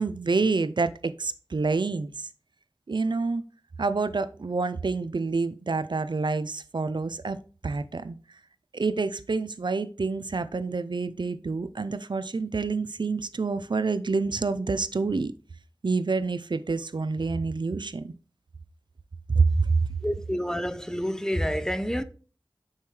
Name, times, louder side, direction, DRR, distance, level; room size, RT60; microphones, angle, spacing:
voice 1, 0.0-2.3 2.9-3.4 3.8-7.4 7.6-8.2 8.7-15.3 15.8-18.1 19.3-19.9, right 4 dB, 60° right, 0.5 m, -27 dB
voice 2, 20.0-22.0, equal, 5° left, 0.6 m, -28 dB
6.9 x 4.5 x 3.2 m
wide cardioid pair, 50°, 9 cm